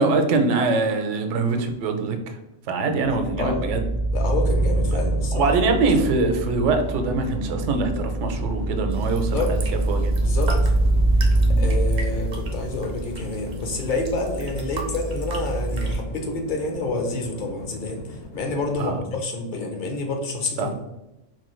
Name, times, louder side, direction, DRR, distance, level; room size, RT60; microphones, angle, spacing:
voice 1, 0.0-2.4 2.7-3.8 4.9-5.0 5.3-9.6 9.9-10.4 11.4-11.7 18.8-19.0 20.6-20.7, right 3 dB, 80° right, 6 dB, 0.9 m, -23 dB
sound 1, 3.0-16.0, right 2 dB, 90° left, 2.0 m, -24 dB
voice 2, 4.1-5.5 9.2-9.5 10.2-10.7 11.5-20.7, left 2 dB, 50° left, 2 dB, 0.7 m, -28 dB
sound 2, 4.2-19.0, left 2 dB, 70° left, 1.0 m, -38 dB
sound 3, 8.9-16.0, right 3 dB, 55° right, 0.5 m, -39 dB
4.4 x 2.3 x 3.0 m, 0.96 s
omnidirectional pair, 1.2 m